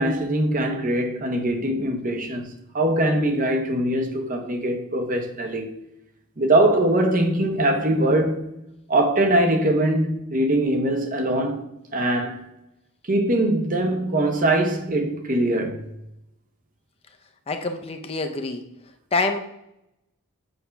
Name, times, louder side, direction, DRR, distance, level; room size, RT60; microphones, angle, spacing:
voice 1, 0.0-5.7 6.4-11.6 11.9-12.5 13.1-15.8, right 1 dB, 40° right, 0.9 m, -22 dB
voice 2, 17.5-18.6 19.1-19.4, left 3 dB, 30° left, 0.5 m, -26 dB
7.8 x 2.8 x 5.7 m
head